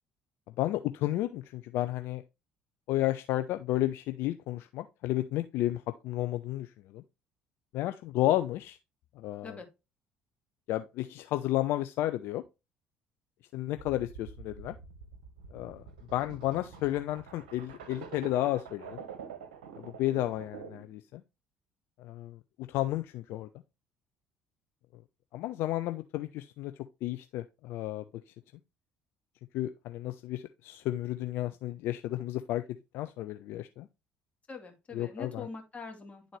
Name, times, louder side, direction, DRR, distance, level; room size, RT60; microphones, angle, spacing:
voice 1, 0.6-2.2 2.9-7.0 7.7-8.8 9.2-9.6 10.7-12.4 13.5-14.8 15.5-15.8 16.1-19.0 19.8-21.2 22.0-22.4 22.7-23.5 25.3-26.7 27.0-28.0 29.5-32.6 32.9-33.9 34.9-35.5, left 15 dB, 65° left, 0.4 m, -32 dB
sound 1, 13.8-20.9, right 6 dB, 80° right, 0.8 m, -47 dB
voice 2, 34.5-36.4, left 4 dB, 30° left, 2.4 m, -43 dB
10.5 x 3.8 x 3.2 m
hypercardioid pair, 55°, 4 cm